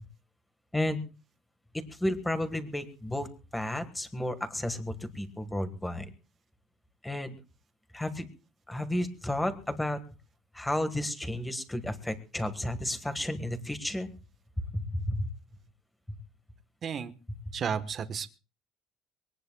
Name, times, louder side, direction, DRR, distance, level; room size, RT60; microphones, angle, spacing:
voice 1, 0.7-1.0 2.0-3.3 3.5-6.1 7.0-7.3 7.9-8.3 8.7-10.0 10.5-14.1 14.6-15.3 16.1-16.2, left 1 dB, 5° left, 9 dB, 1.6 m, -32 dB
voice 2, 16.8-17.1 17.5-18.3, right 7 dB, 35° right, 10 dB, 1.2 m, -32 dB
23.0 x 18.5 x 2.3 m, 0.33 s
cardioid pair, 150°, 0 cm